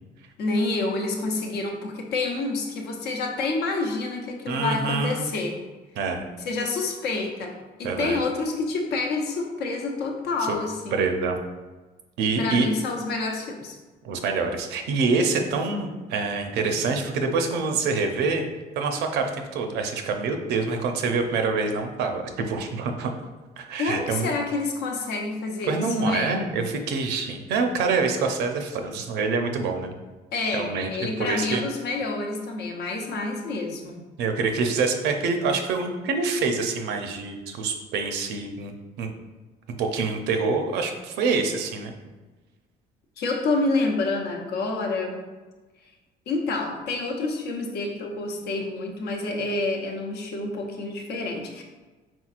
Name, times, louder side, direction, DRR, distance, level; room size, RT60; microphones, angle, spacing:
voice 1, 0.4-5.5 6.4-11.1 12.2-13.7 23.8-26.4 30.3-34.0 43.2-45.2 46.3-51.6, left 3 dB, 80° left, 2 dB, 0.8 m, -28 dB
voice 2, 4.5-5.3 6.0-6.3 7.8-8.2 10.5-10.6 10.9-11.4 12.2-12.7 14.0-18.5 18.8-23.1 23.6-24.3 25.7-29.9 30.5-30.9 31.2-31.6 34.2-38.7 39.0-39.1 39.8-41.9, right 4 dB, 85° right, 5 dB, 0.6 m, -26 dB
4.5 x 3.7 x 2.4 m, 1.2 s
cardioid pair, 110°, 17 cm